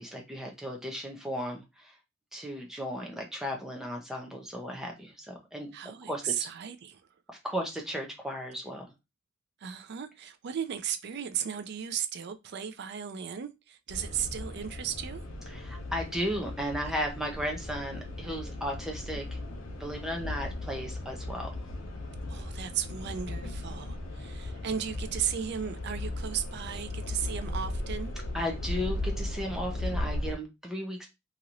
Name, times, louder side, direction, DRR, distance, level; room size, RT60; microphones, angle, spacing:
voice 1, 0.0-2.0 2.3-5.7 6.1-6.2 7.4-8.9 15.5-19.4 19.8-21.5 28.3-31.1, equal, ahead, 0.7 m, -35 dB
voice 2, 5.7-7.0 9.6-15.2 22.3-28.1, right 8 dB, 55° right, 0.4 m, -35 dB
sound 1, 13.9-30.3, left 1 dB, 75° left, 0.8 m, -37 dB
2.9 x 2.9 x 2.5 m
head